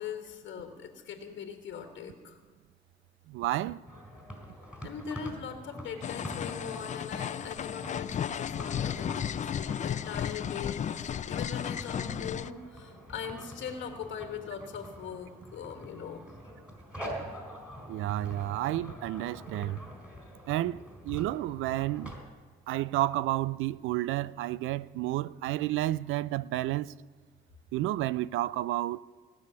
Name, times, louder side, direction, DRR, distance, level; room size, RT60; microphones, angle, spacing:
voice 1, 0.0-2.3 4.8-16.3, left 7 dB, 70° left, 1.4 m, -41 dB
voice 2, 3.3-3.8 17.9-19.8 20.5-22.1 22.7-26.9 27.7-29.0, right 15 dB, 85° right, 0.4 m, -31 dB
sound 1, 3.9-22.2, equal, 5° right, 4.0 m, -45 dB
sound 2, 6.0-12.5, left 8 dB, 40° left, 0.4 m, -34 dB
18.0 x 6.5 x 9.5 m
cardioid pair, 90°, 20 cm